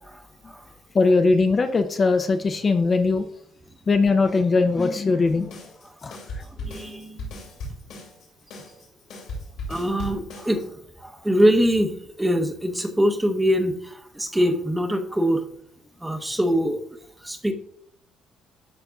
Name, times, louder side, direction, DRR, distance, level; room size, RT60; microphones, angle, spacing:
voice 1, 0.1-0.6 6.4-7.3 9.7-10.7 11.0-15.4 16.0-16.8 17.2-17.5, equal, 10° right, 6 dB, 0.8 m, -23 dB
voice 2, 0.9-3.3 3.9-5.5 6.0-6.2, left 3 dB, 35° left, 7 dB, 0.5 m, -20 dB
sound 1, 5.3-10.7, left 1 dB, 85° left, 2.3 m, -37 dB
11.5 x 4.1 x 2.3 m, 0.65 s
cardioid pair, 95°, 0 cm